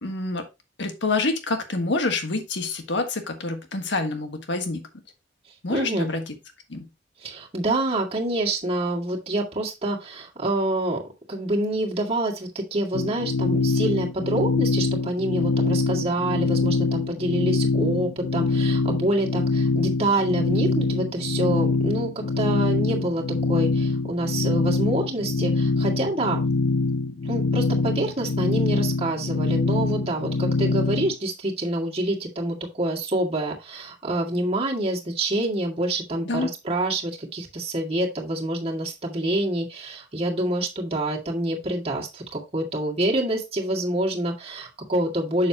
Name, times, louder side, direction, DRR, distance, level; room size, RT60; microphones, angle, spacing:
voice 1, 0.0-0.4 0.8-4.9 5.6-6.3 6.7-6.9 36.2-36.5, left 3 dB, 65° left, 6 dB, 1.5 m, -27 dB
voice 2, 5.7-6.1 7.2-11.0 11.3-22.1 22.4-26.4 27.2-45.5, right 1 dB, 30° right, -1 dB, 2.0 m, -27 dB
sound 1, 12.9-31.1, left 3 dB, 80° left, 0.8 m, -24 dB
7.3 x 6.8 x 2.9 m, 0.25 s
head